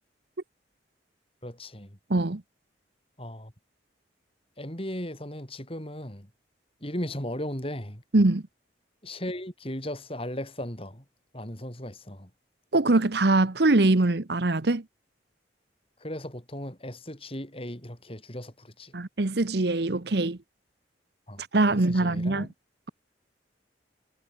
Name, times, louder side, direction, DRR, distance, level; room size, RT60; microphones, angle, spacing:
voice 1, 1.4-2.0 3.2-3.5 4.6-6.3 6.8-8.0 9.0-11.0 11.3-12.3 16.0-18.9 21.3-21.4 21.7-22.5, left 1 dB, 30° left, 6.0 m, -36 dB
voice 2, 2.1-2.4 8.1-8.4 12.7-14.8 18.9-20.4 21.5-22.5, right 2 dB, 60° right, 1.0 m, -23 dB
head